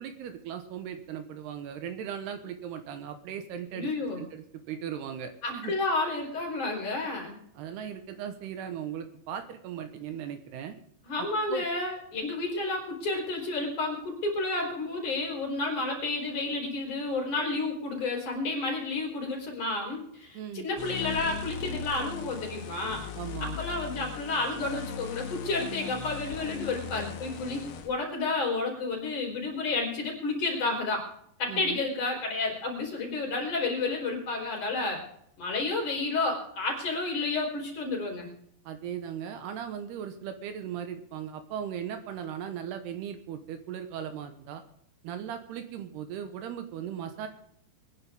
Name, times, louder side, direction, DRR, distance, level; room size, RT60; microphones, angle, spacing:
voice 1, 0.0-3.9 4.2-5.7 7.6-10.8 11.2-11.7 20.3-20.7 23.1-23.6 31.5-31.8 38.7-44.6 45.0-47.3, right 8 dB, 75° right, 8 dB, 3.1 m, -38 dB
voice 2, 3.7-4.2 5.4-7.4 11.0-23.0 23.4-31.1 31.4-35.0 35.4-38.3, left 3 dB, 45° left, -1 dB, 5.4 m, -31 dB
sound 1, 20.8-27.9, left 7 dB, 70° left, 3.3 m, -39 dB
23.5 x 10.5 x 3.6 m, 0.68 s
omnidirectional pair, 4.9 m